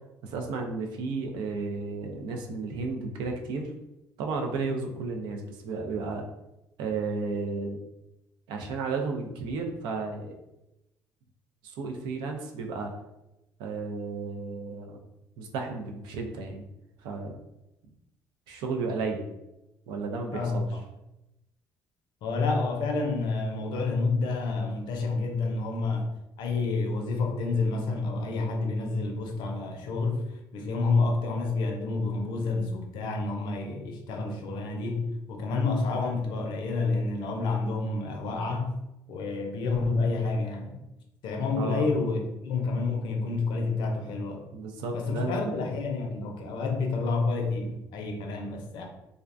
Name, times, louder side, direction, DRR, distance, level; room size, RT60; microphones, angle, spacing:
voice 1, 0.2-3.7 4.2-6.2 6.8-7.8 8.5-10.3 11.6-12.9 13.6-15.0 15.4-16.6 17.0-17.3 18.5-19.2 19.9-20.7 41.6-41.9 44.5-45.6, right 4 dB, 80° right, 3 dB, 0.4 m, -33 dB
voice 2, 20.3-20.8 22.2-26.1 26.4-30.3 30.5-38.7 39.1-40.8 41.2-44.4 44.9-48.9, left 3 dB, 75° left, 2 dB, 0.5 m, -29 dB
2.4 x 2.1 x 2.5 m, 0.90 s
supercardioid pair, 70°, 8 cm